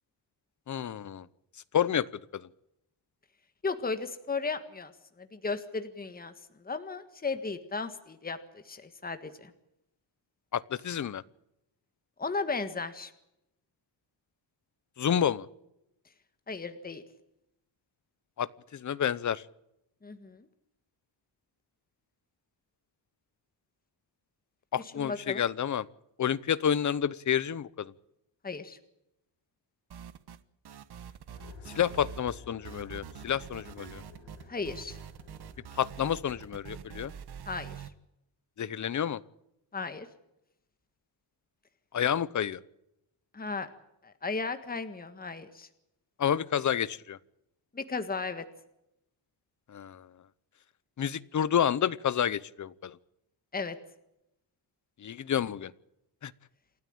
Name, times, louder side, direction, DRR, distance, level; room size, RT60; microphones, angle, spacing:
voice 1, 0.7-1.3 1.7-2.5 10.5-11.2 15.0-15.5 18.4-19.4 24.7-25.9 26.2-27.9 31.7-34.0 35.8-37.1 38.6-39.2 41.9-42.6 46.2-47.2 49.7-50.1 51.0-53.0 55.0-55.7 56.2-56.3, left 9 dB, 40° left, 18 dB, 0.8 m, -29 dB
voice 2, 3.6-4.9 5.2-6.3 6.6-9.5 12.2-13.1 16.5-17.0 20.0-20.5 24.8-25.4 28.4-28.8 34.5-35.0 37.4-37.9 39.7-40.1 43.3-43.7 44.0-45.7 47.7-48.4 53.5-53.7, left 4 dB, 20° left, 9 dB, 1.7 m, -35 dB
sound 1, 29.9-30.4 30.7-32.4 32.7-37.9, right 8 dB, 55° right, 1.3 m, -45 dB
sound 2, 31.3-37.2, left 4 dB, 80° left, 6.9 m, -52 dB
28.5 x 13.0 x 9.0 m, 0.84 s
wide cardioid pair, 155°, 45 cm